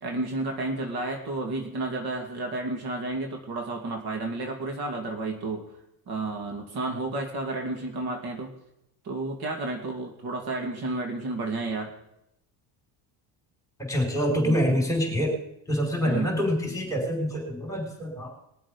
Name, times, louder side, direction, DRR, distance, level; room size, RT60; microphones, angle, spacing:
voice 1, 0.0-5.6 6.1-8.5 9.0-11.9 14.4-14.6 16.0-16.4, right 2 dB, 50° right, 2 dB, 2.7 m, -31 dB
voice 2, 13.9-15.3 15.7-18.3, equal, 5° left, 1 dB, 5.2 m, -26 dB
22.0 x 7.5 x 5.3 m, 0.82 s
cardioid pair, 115°, 48 cm